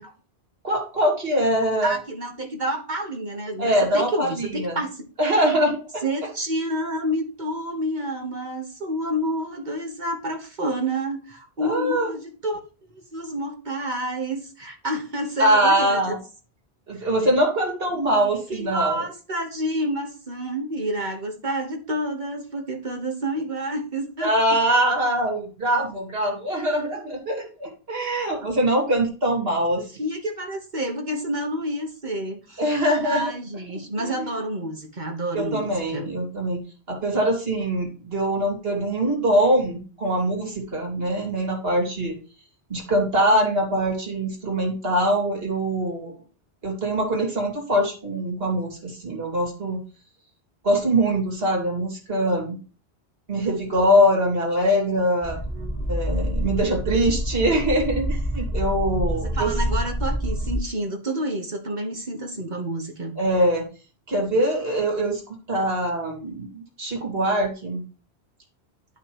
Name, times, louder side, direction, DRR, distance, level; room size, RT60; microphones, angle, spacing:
voice 1, 0.6-1.9 3.6-4.8 5.2-6.0 11.6-12.1 15.4-16.2 16.9-19.0 24.2-29.8 32.6-33.2 34.0-34.3 35.3-36.6 36.9-42.2 42.7-46.2 46.6-49.8 50.6-52.6 53.3-55.4 55.9-59.5 63.2-63.6 64.1-67.8, right 1 dB, 65° right, 0 dB, 2.9 m, -23 dB
voice 2, 1.5-5.0 6.0-12.6 12.9-16.2 17.0-17.1 17.9-24.3 29.8-32.6 33.0-36.1 55.5-55.8 59.3-63.1, right 1 dB, 45° right, 2 dB, 1.5 m, -29 dB
sound 1, 55.2-60.6, equal, 15° left, 1.3 m, -27 dB
12.0 x 5.9 x 3.1 m, 0.36 s
omnidirectional pair, 1.1 m